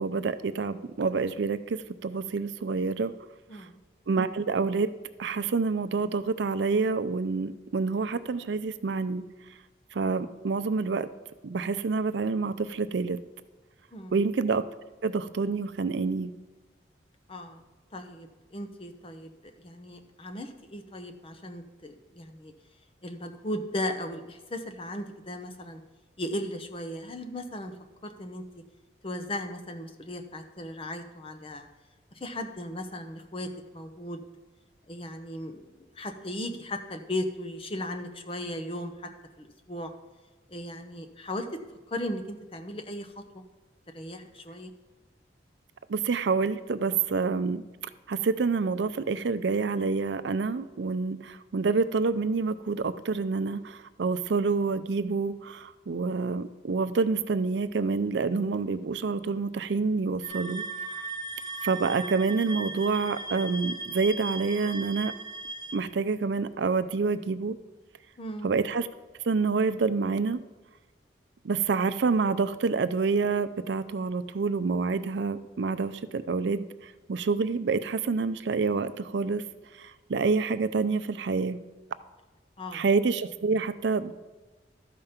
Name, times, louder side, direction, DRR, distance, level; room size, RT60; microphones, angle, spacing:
voice 1, 0.0-3.1 3.5-3.7 4.1-4.9 5.2-9.2 9.9-11.1 11.4-13.2 14.1-14.6 15.0-16.3 45.9-47.6 48.1-60.6 60.9-61.0 61.6-65.1 65.7-67.6 68.4-68.9 69.2-70.4 71.4-79.4 79.7-81.6 82.7-84.1, right 4 dB, 70° right, 12 dB, 0.5 m, -27 dB
voice 2, 3.5-3.8 13.9-14.1 17.3-17.6 17.9-19.3 19.6-22.5 23.0-25.8 26.2-27.7 28.0-28.6 29.0-31.7 32.2-34.2 34.9-39.1 39.4-39.9 40.5-41.5 41.9-43.4 43.9-44.7 68.2-68.5 82.6-82.8, left 1 dB, 30° left, 5 dB, 0.8 m, -37 dB
sound 1, 60.2-65.8, right 2 dB, 20° right, 0.6 m, -37 dB
13.0 x 5.2 x 5.7 m, 1.2 s
head